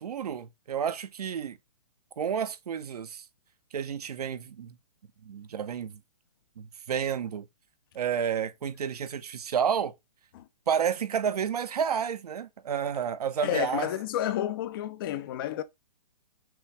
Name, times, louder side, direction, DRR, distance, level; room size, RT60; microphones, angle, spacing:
voice 1, 0.0-1.6 2.2-3.2 3.7-4.7 5.2-6.0 6.6-7.5 7.9-9.9 10.7-13.9, right 8 dB, 70° right, 0.7 m, -30 dB
voice 2, 13.4-15.6, left 12 dB, 35° left, 0.5 m, -30 dB
5.8 x 2.4 x 3.2 m
hypercardioid pair, 135°, 20 cm